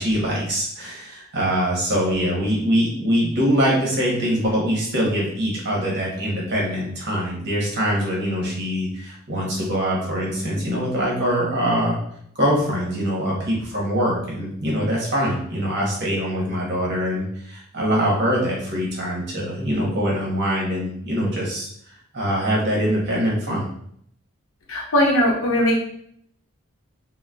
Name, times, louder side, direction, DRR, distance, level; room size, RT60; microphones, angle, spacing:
voice 1, 0.0-12.0 12.4-21.7 22.1-23.6, equal, 50° right, -3 dB, 0.9 m, -23 dB
voice 2, 24.7-25.8, left 1 dB, 65° left, -1 dB, 0.7 m, -19 dB
3.8 x 2.1 x 2.2 m, 0.67 s
head